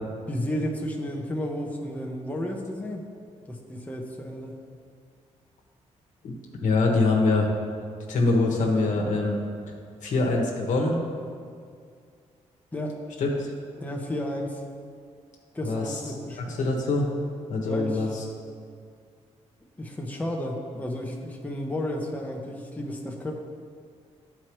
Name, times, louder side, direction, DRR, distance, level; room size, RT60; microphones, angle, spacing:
voice 1, 0.3-3.1 3.5-4.6 12.7-13.0 13.8-14.6 15.5-16.6 17.6-18.1 19.8-23.3, left 1 dB, 10° left, 0 dB, 0.9 m, -32 dB
voice 2, 6.6-7.5 8.1-9.4 10.0-11.0 13.2-13.5 15.6-16.0 16.6-17.1 17.5-18.1, left 3 dB, 80° left, 0 dB, 1.2 m, -23 dB
11.5 x 4.6 x 3.1 m, 2.2 s
cardioid pair, 95°, 13 cm